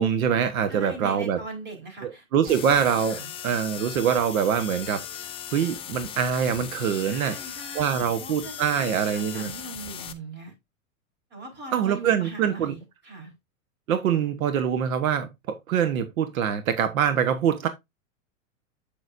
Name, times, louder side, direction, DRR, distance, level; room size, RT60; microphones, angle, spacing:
voice 1, 0.0-1.4 2.0-5.0 5.5-7.4 7.7-9.5 11.7-12.7 13.9-17.7, right 8 dB, 80° right, 1.3 m, -24 dB
voice 2, 0.7-2.8 3.0-3.3 7.0-10.5 11.3-13.3, right 3 dB, 25° right, 4.1 m, -40 dB
sound 1, 2.5-10.1, left 10 dB, 15° left, 0.4 m, -38 dB
8.0 x 6.7 x 2.6 m
supercardioid pair, 140°, 41 cm